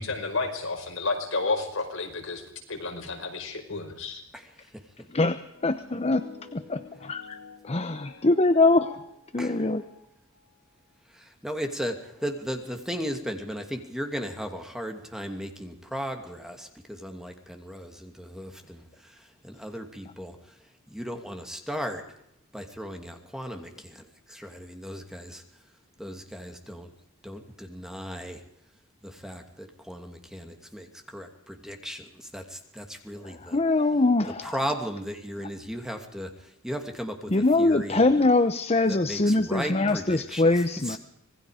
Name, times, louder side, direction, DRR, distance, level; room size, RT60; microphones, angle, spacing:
voice 1, 0.0-2.4 2.7-4.2, left 3 dB, 70° left, 3 dB, 5.4 m, -31 dB
voice 2, 5.1-6.3 6.5-7.4 7.6-9.0 9.3-9.8 33.2-34.7 37.3-41.0, left 2 dB, 30° left, 10 dB, 0.9 m, -23 dB
sound 1, 5.5-10.5, left 4 dB, 85° left, 6.1 m, -48 dB
voice 3, 11.1-18.8 19.4-20.4 20.9-22.0 22.5-25.4 26.0-26.9 27.2-28.4 29.0-33.6 34.4-36.3 36.6-37.3 37.6-38.0 38.9-40.4, equal, 5° right, 4 dB, 2.5 m, -36 dB
26.5 x 20.0 x 5.1 m, 0.76 s
head